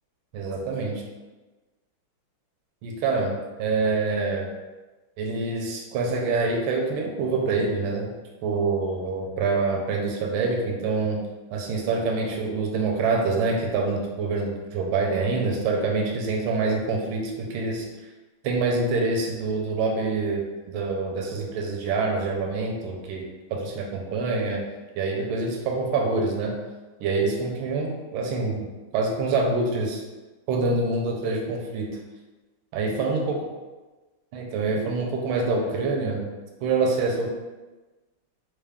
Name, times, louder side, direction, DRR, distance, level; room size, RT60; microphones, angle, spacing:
voice 1, 0.3-1.0 2.8-4.5 5.2-8.1 8.4-11.2 11.5-17.9 18.4-20.4 20.7-23.2 23.5-24.6 25.0-26.5 27.0-30.0 30.5-31.9 32.7-33.4 34.3-36.3 36.6-37.3, right 3 dB, 80° right, 0 dB, 1.4 m, -26 dB
3.6 x 2.3 x 3.4 m, 1.2 s
omnidirectional pair, 2.3 m